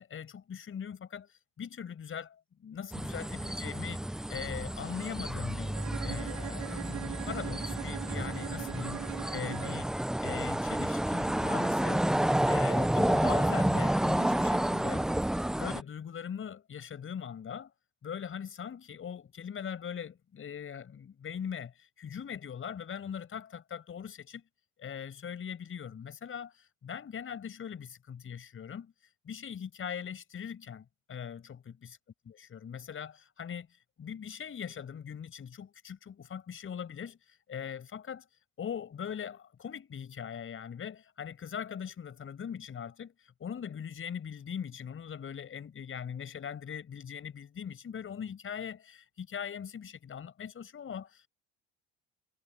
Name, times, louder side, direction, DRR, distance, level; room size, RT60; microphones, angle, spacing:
voice 1, 0.0-4.0 4.3-15.1 15.6-17.7 18.0-24.4 24.8-28.9 29.2-32.0 32.3-33.7 34.0-38.3 38.6-51.3, left 8 dB, 40° left, 6.7 m, -41 dB
sound 1, 2.9-15.8, right 1 dB, ahead, 0.3 m, -30 dB
Bowed string instrument, 5.7-10.0, right 14 dB, 60° right, 2.6 m, -41 dB
supercardioid pair, 90°, 32 cm